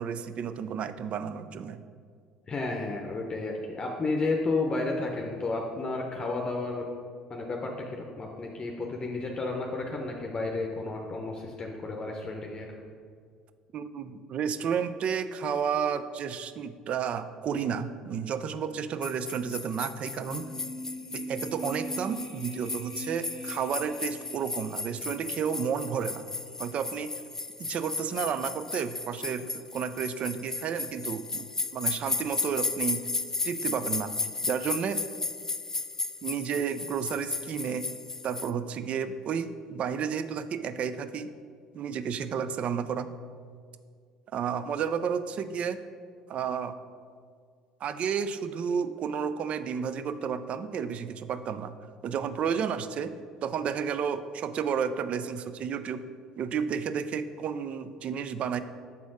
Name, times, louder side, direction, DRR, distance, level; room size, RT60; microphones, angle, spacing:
voice 1, 0.0-1.8 13.7-20.5 21.1-26.3 26.6-27.1 27.6-31.5 31.7-33.1 33.4-34.1 34.4-35.0 36.2-37.9 38.2-41.3 41.7-43.1 44.3-45.8 46.3-46.8 47.8-51.8 52.0-53.1 53.4-56.1 56.4-58.6, right 7 dB, 50° right, 12 dB, 0.4 m, -31 dB
voice 2, 2.5-6.9 7.3-12.7, left 3 dB, 35° left, 1 dB, 0.7 m, -32 dB
sound 1, 19.0-38.5, left 3 dB, 20° left, 0.3 m, -35 dB
sound 2, 20.1-25.4 25.7-25.8, right 2 dB, 70° right, 0.8 m, -42 dB
7.0 x 4.2 x 4.8 m, 2.1 s
hypercardioid pair, 65°, 3 cm